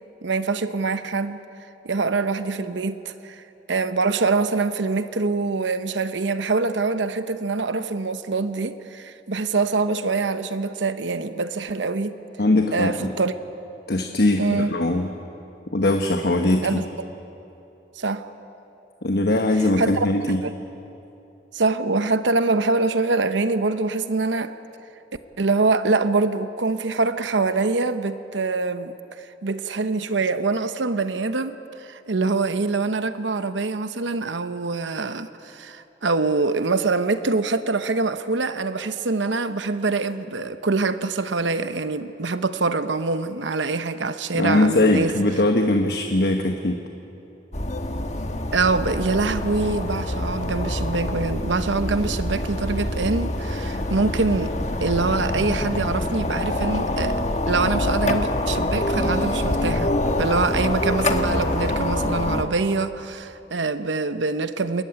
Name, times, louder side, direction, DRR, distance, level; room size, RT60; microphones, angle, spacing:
voice 1, 0.2-1.4 1.8-12.1 12.7-13.3 14.4-14.7 16.6-16.9 18.0-18.2 19.8-20.1 20.4-20.5 21.5-24.5 25.4-45.1 48.5-54.5 54.8-64.8, right 3 dB, 85° right, 11 dB, 0.9 m, -24 dB
voice 2, 12.4-13.1 13.9-15.1 15.7-16.8 19.0-20.4 44.3-46.8, left 2 dB, 60° left, 4 dB, 1.1 m, -21 dB
sound 1, 47.5-62.4, left 1 dB, 40° left, 1.3 m, -25 dB
28.0 x 14.0 x 10.0 m, 2.9 s
head